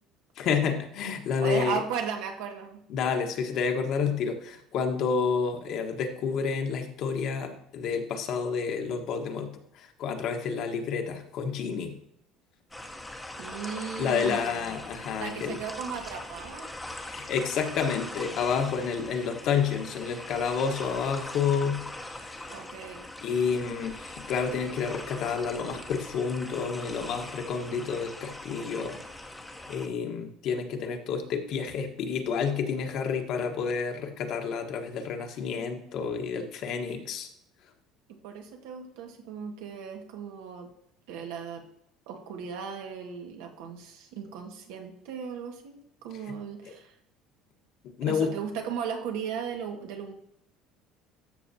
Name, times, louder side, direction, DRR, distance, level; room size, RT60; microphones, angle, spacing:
voice 1, 0.4-1.8 2.9-11.9 14.0-15.6 17.0-21.8 22.1-22.5 23.2-29.0 29.7-37.3 46.2-46.3 46.6-46.7 48.0-48.3, left 6 dB, 55° left, 5 dB, 1.3 m, -29 dB
voice 2, 1.4-2.8 13.4-14.7 15.2-16.7 22.5-23.0 38.1-40.7 41.1-41.6 42.1-46.9 48.0-50.1, right 7 dB, 90° right, 2 dB, 1.7 m, -36 dB
sound 1, 12.7-29.9, left 1 dB, 5° left, 0.9 m, -41 dB
13.0 x 6.5 x 2.8 m, 0.77 s
cardioid pair, 150°, 0 cm